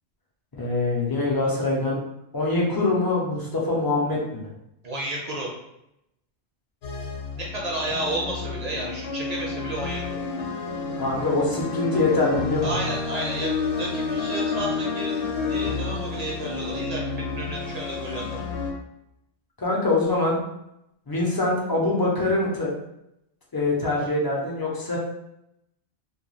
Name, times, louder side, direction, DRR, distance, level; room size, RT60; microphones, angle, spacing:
voice 1, 0.5-2.0 2.3-4.5 11.0-12.8 19.6-20.4 21.1-22.7 23.5-25.0, left 2 dB, 35° left, -4 dB, 0.3 m, -24 dB
voice 2, 4.8-5.5 7.4-10.2 12.6-18.4 21.1-21.2, right 1 dB, 45° right, -3 dB, 0.6 m, -32 dB
sound 1, 6.8-18.7, left 4 dB, 70° left, 0.8 m, -30 dB
2.2 x 2.2 x 3.1 m, 0.82 s
omnidirectional pair, 1.2 m